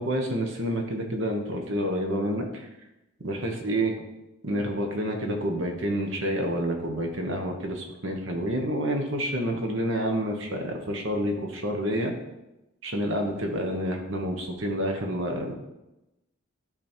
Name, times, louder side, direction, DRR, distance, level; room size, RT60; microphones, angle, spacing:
voice 1, 0.0-2.7 3.2-3.9 4.4-12.1 12.8-15.5, equal, 60° right, 3 dB, 1.4 m, -28 dB
12.0 x 4.4 x 4.5 m, 0.95 s
head